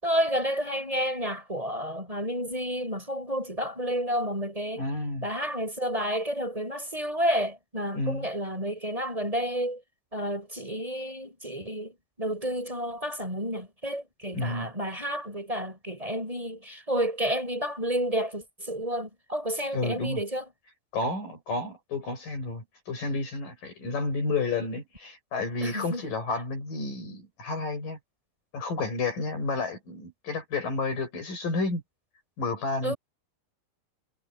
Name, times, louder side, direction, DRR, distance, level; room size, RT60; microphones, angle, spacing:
voice 1, 0.0-4.8 5.2-9.8 10.1-20.5 25.6-26.0 32.8-33.0, equal, 10° right, 7.9 m, -30 dB
voice 2, 4.7-5.3 7.9-8.3 14.3-14.7 19.7-20.2 20.9-28.0 28.5-31.8 32.4-32.9, left 3 dB, 60° left, 7.4 m, -31 dB
omnidirectional pair, 4.3 m